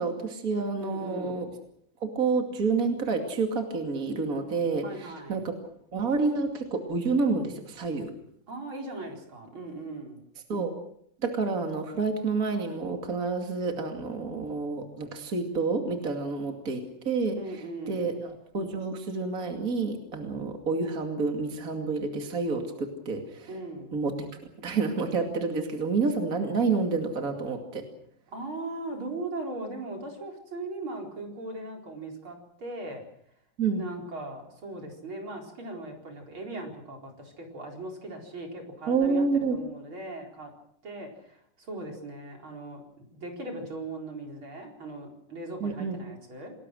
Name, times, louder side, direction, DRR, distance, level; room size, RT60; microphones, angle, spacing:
voice 1, 0.0-1.5 2.0-5.5 5.9-8.1 10.5-10.7 11.2-23.5 23.9-24.3 24.6-27.8 33.6-33.8 38.9-39.6 45.6-46.0, right 4 dB, 40° right, 4 dB, 2.9 m, -29 dB
voice 2, 0.8-1.5 4.8-5.4 8.5-10.2 17.4-18.2 23.5-24.0 28.3-33.0 33.8-39.3 39.5-40.5 40.8-46.5, right 2 dB, 80° right, 1 dB, 5.3 m, -39 dB
28.0 x 20.0 x 6.4 m, 0.69 s
omnidirectional pair, 2.2 m